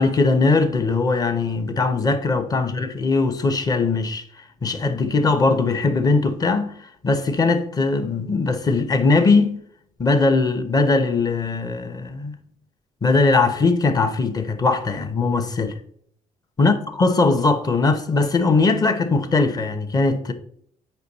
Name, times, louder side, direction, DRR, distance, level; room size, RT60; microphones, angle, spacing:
voice 1, 0.0-4.2 4.6-9.6 10.0-12.4 13.0-15.8 16.6-20.3, left 3 dB, 25° left, 0.9 m, -20 dB
8.3 x 5.3 x 4.1 m
cardioid pair, 115°, 15 cm